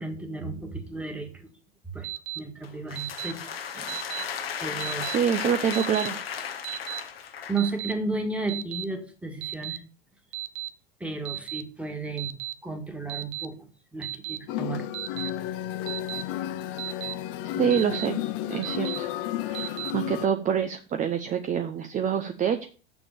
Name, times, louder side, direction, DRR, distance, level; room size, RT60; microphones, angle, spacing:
voice 1, 0.0-1.5 1.9-2.1 2.4-4.2 4.6-5.3 7.5-9.8 11.0-12.4 12.6-14.9 15.2-15.3, right 3 dB, 5° right, 4 dB, 2.0 m, -34 dB
Alarm, 2.0-2.4 3.0-3.3 3.9-4.2 4.8-5.2 5.7-6.1 6.6-7.0 7.6-7.9 8.5-8.8 9.4-9.8 10.3-10.7 11.2-11.6 12.2-12.5 13.1-13.5 14.0-14.4 14.9-15.3 15.9-16.2 16.8-17.1 17.7-18.1 18.6-19.0 19.5-19.9, right 16 dB, 55° right, 0.8 m, -34 dB
sound 1, 2.6-7.7, left 7 dB, 85° left, 1.1 m, -35 dB
voice 2, 5.0-6.5 17.5-18.2 18.5-19.1 19.5-22.7, right 8 dB, 25° right, 7 dB, 0.8 m, -27 dB
sound 2, 14.5-20.3, left 12 dB, 50° left, 0.8 m, -32 dB
6.9 x 6.2 x 6.6 m, 0.37 s
hypercardioid pair, 95°, 29 cm